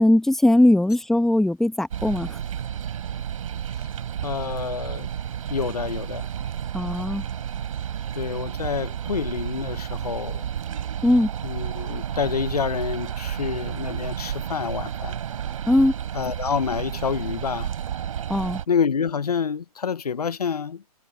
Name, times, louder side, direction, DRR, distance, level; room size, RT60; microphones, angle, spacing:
voice 1, 0.0-2.4 6.7-7.2 11.0-11.3 15.7-15.9 18.3-18.6, left 1 dB, ahead, 1.3 m, -19 dB
sound 1, 1.9-18.7, right 9 dB, 60° right, 5.1 m, -31 dB
voice 2, 4.2-5.1 5.5-6.3 8.1-10.4 11.4-15.2 16.1-17.7 18.7-20.8, left 6 dB, 80° left, 1.2 m, -28 dB
hypercardioid pair, 130°, 19 cm